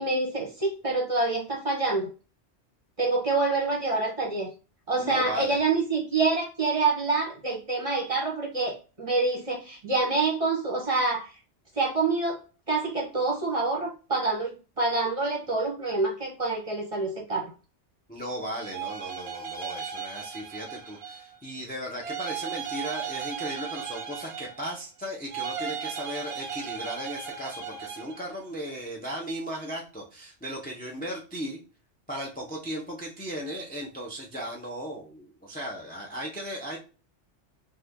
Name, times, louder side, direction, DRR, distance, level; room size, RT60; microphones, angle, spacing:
voice 1, 0.0-2.1 3.0-4.5 4.9-11.3 11.8-12.4 12.7-17.5, right 3 dB, 35° right, -1 dB, 0.7 m, -27 dB
voice 2, 5.0-5.6 18.1-31.6 32.1-36.8, equal, 10° left, 0 dB, 0.4 m, -36 dB
sound 1, 18.5-21.4 22.0-24.8 25.3-28.3, right 7 dB, 65° right, 0.8 m, -36 dB
2.7 x 2.5 x 3.5 m, 0.34 s
omnidirectional pair, 1.2 m